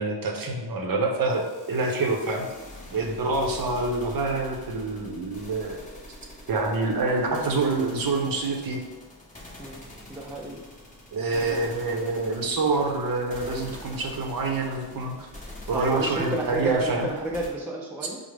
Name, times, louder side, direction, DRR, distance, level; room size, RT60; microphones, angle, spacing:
voice 1, 0.0-2.5 2.9-5.8 6.5-8.8 11.1-15.3 15.7-17.1, right 3 dB, 45° right, 2 dB, 0.7 m, -26 dB
sound 1, 1.3-17.5, left 1 dB, 15° left, 0.9 m, -45 dB
voice 2, 10.1-10.6 11.3-11.7 15.7-18.2, right 2 dB, 5° right, -1 dB, 0.3 m, -32 dB
4.8 x 2.0 x 3.2 m, 1.2 s
cardioid pair, 105°, 47 cm